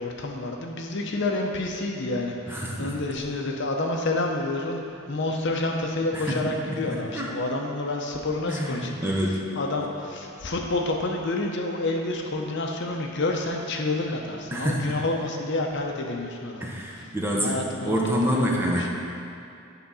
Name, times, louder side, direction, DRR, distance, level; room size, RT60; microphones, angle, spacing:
voice 1, 0.0-9.1 9.6-17.1 17.3-17.9 18.3-18.9, left 2 dB, 55° left, 1 dB, 0.7 m, -29 dB
voice 2, 2.5-3.0 6.1-6.5 6.9-7.3 8.5-9.9 14.5-15.0 16.6-17.6 17.8-18.9, equal, 10° right, -3 dB, 0.7 m, -27 dB
8.4 x 3.7 x 5.5 m, 2.6 s
head